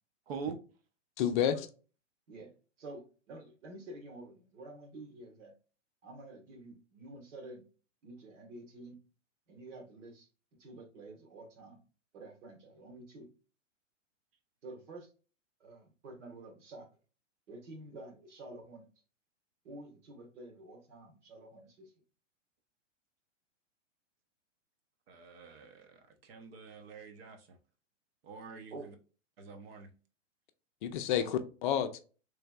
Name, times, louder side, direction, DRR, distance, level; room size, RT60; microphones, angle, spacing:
voice 1, 0.3-0.6 25.1-27.6 28.2-28.9 29.4-29.9, right 6 dB, 55° right, 0.8 m, -45 dB
voice 2, 1.2-1.6 30.8-32.0, left 9 dB, 40° left, 0.5 m, -30 dB
voice 3, 2.8-5.5 6.0-7.6 8.0-9.0 9.5-10.3 10.6-11.8 12.1-13.3 14.6-15.1 15.6-16.9 17.5-18.9 19.6-21.9 28.7-28.9 31.2-31.3, right 2 dB, 70° right, 1.6 m, -49 dB
3.3 x 3.3 x 2.3 m
hypercardioid pair, 130°, 37 cm